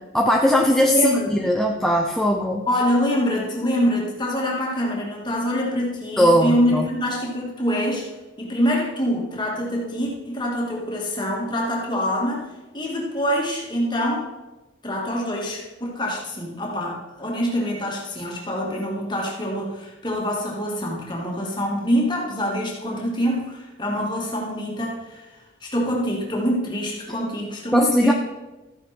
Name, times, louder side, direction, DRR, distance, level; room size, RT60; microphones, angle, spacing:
voice 1, 0.1-2.7 6.2-6.8 27.7-28.1, equal, ahead, 0 dB, 0.7 m, -19 dB
voice 2, 0.9-1.4 2.7-8.1 8.4-12.5 12.7-14.3 14.8-25.2 25.6-28.1, equal, 20° left, -2 dB, 2.3 m, -25 dB
13.5 x 9.4 x 4.5 m, 1.1 s
head